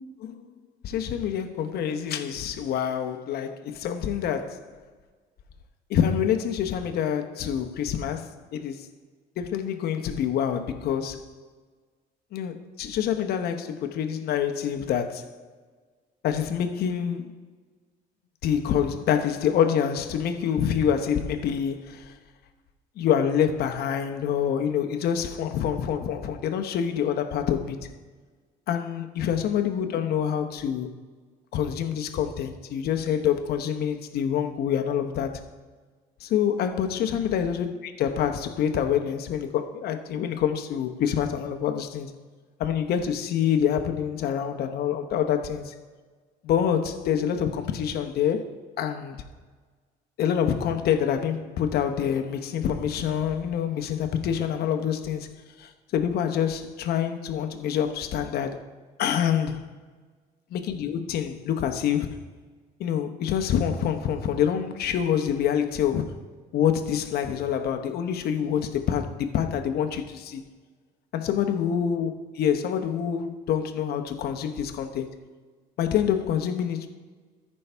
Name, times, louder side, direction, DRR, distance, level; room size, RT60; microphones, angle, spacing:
voice 1, 0.8-4.7 5.9-8.9 9.4-11.3 12.3-15.3 16.2-17.3 18.4-22.1 23.0-27.9 28.7-30.9 31.5-35.4 36.2-42.1 42.6-45.7 46.4-49.2 50.2-55.3 55.6-58.6 59.0-59.7 60.5-62.1 62.8-66.2 66.5-70.4 71.1-75.1 75.8-76.9, left 8 dB, 70° left, 0.9 m, -26 dB
14.0 x 5.5 x 3.4 m
cardioid pair, 110°, 17 cm